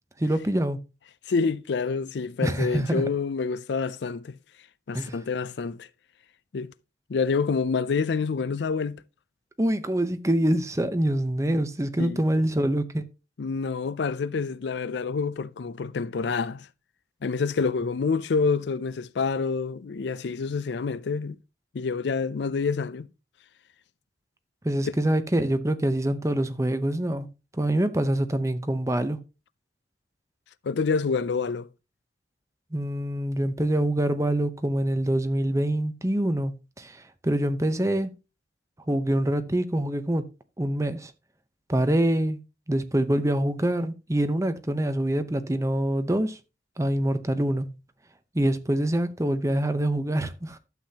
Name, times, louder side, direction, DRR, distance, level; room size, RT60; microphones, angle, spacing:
voice 1, 0.2-0.8 2.4-3.1 4.9-5.1 9.6-13.0 24.6-27.3 27.6-29.2 32.7-38.1 38.9-40.2 40.6-41.1 41.7-42.4 42.7-46.4 46.8-47.7 48.3-50.6, right 1 dB, 15° right, 0.8 m, -25 dB
voice 2, 1.3-4.4 4.9-5.9 6.5-6.7 7.1-9.0 12.0-12.2 13.4-16.7 17.2-21.4 21.7-23.1 30.6-31.7, left 5 dB, 70° left, 0.4 m, -27 dB
12.0 x 7.7 x 2.8 m
head